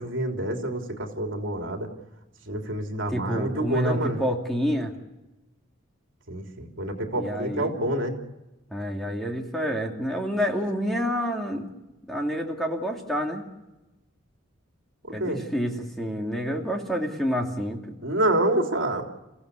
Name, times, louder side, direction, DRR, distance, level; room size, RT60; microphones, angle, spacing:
voice 1, 0.0-1.9 2.5-4.2 6.3-8.2 15.0-15.4 18.0-19.0, right 1 dB, 65° right, 3 dB, 3.4 m, -27 dB
voice 2, 3.1-4.9 7.2-7.7 8.7-11.7 12.1-13.4 15.1-17.8, equal, ahead, 0 dB, 2.6 m, -28 dB
30.0 x 16.5 x 8.4 m, 1.0 s
head